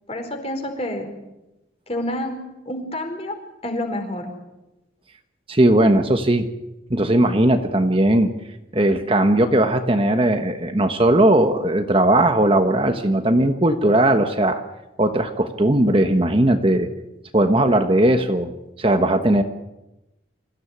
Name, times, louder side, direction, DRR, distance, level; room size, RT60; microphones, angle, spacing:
voice 1, 0.1-1.1 1.9-4.3, left 1 dB, 30° left, 5 dB, 4.6 m, -29 dB
voice 2, 5.5-6.4 6.9-8.3 8.7-14.6 15.0-16.9 17.3-18.5 18.8-19.4, right 1 dB, 30° right, 6 dB, 1.3 m, -18 dB
26.5 x 16.0 x 9.8 m, 1.0 s
head